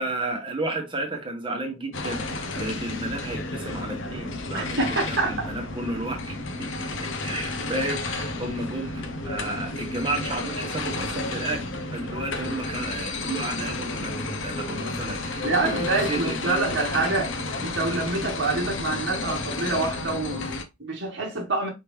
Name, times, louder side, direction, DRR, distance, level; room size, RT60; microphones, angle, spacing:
voice 1, 0.0-6.4 7.2-16.8, right 2 dB, 25° right, 1.1 m, -32 dB
sound 1, 1.9-20.6, left 2 dB, 60° left, 0.7 m, -32 dB
voice 2, 4.5-5.5 15.4-17.3 17.6-21.7, right 2 dB, 55° right, 1.2 m, -26 dB
5.0 x 3.2 x 3.1 m
head